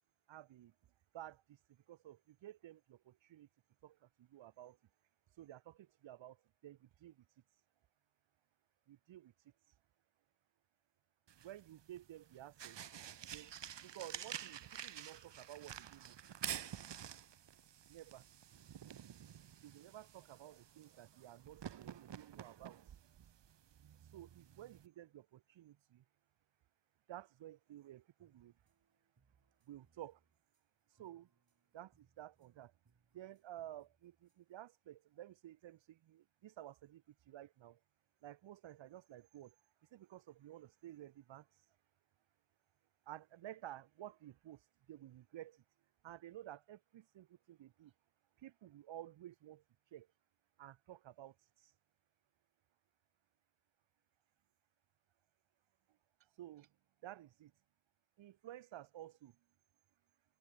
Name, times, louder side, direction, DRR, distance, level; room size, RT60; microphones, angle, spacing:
voice 1, 0.3-0.7 1.1-3.5 3.8-4.8 5.4-7.3 8.9-9.5 11.4-12.8 13.3-16.2 17.9-18.3 19.6-22.8 24.1-26.0 27.1-28.5 29.6-30.2 30.9-31.3 31.7-32.7 33.1-37.8 38.2-39.6 39.9-41.6 43.1-45.6 46.0-47.9 48.4-49.6 49.9-50.1 50.6-51.7 56.2-56.7 57.0-57.5 58.2-59.4, right 13 dB, 90° right, 0.8 m, -54 dB
sound 1, 11.3-24.9, right 9 dB, 70° right, 1.3 m, -50 dB
sound 2, 28.2-34.6, right 5 dB, 50° right, 6.1 m, -78 dB
cardioid pair, 55°, 44 cm